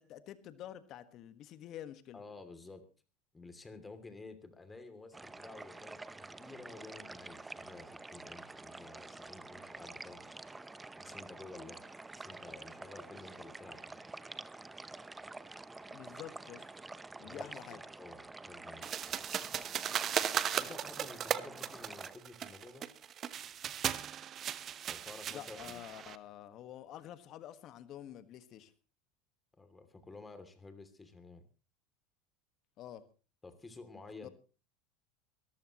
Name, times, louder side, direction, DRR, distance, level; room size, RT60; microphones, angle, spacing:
voice 1, 0.0-2.2 15.9-16.7 17.2-17.8 25.3-28.7 32.8-33.0 34.2-34.3, left 11 dB, 50° left, 11 dB, 1.5 m, -48 dB
voice 2, 2.1-2.8 3.3-10.3 10.9-11.8 12.1-14.0 17.2-19.3 20.5-22.9 24.8-25.8 29.5-31.5 33.4-34.3, left 3 dB, 15° left, 9 dB, 2.8 m, -52 dB
sound 1, 5.1-22.1, right 3 dB, 10° right, 0.8 m, -48 dB
sound 2, 18.8-26.2, right 9 dB, 40° right, 1.0 m, -37 dB
23.0 x 14.0 x 3.0 m, 0.34 s
supercardioid pair, 105°, 0 cm